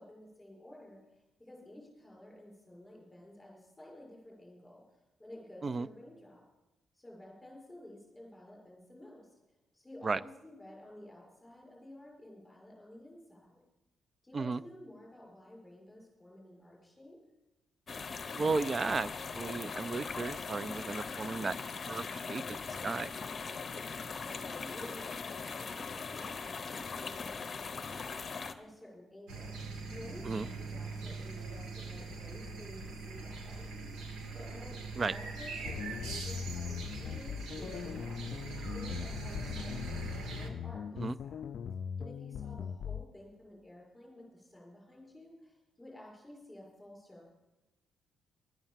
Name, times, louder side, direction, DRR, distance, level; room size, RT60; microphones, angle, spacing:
voice 1, 0.0-4.8 5.2-6.4 6.9-9.3 9.7-13.6 14.2-17.2 24.2-33.7 34.3-40.0 40.4-41.4 42.0-47.3, left 1 dB, 5° left, 6.1 m, -52 dB
sound 1, 17.9-28.5, left 5 dB, 30° left, 0.9 m, -40 dB
voice 2, 18.4-21.5 21.9-23.1 30.2-30.5 35.0-35.1 41.0-41.2, right 4 dB, 30° right, 0.4 m, -34 dB
sound 2, 29.3-40.5, right 3 dB, 80° right, 1.9 m, -42 dB
sound 3, 35.7-43.0, left 7 dB, 55° left, 0.4 m, -40 dB
12.0 x 8.9 x 7.3 m
cardioid pair, 140°, 0 cm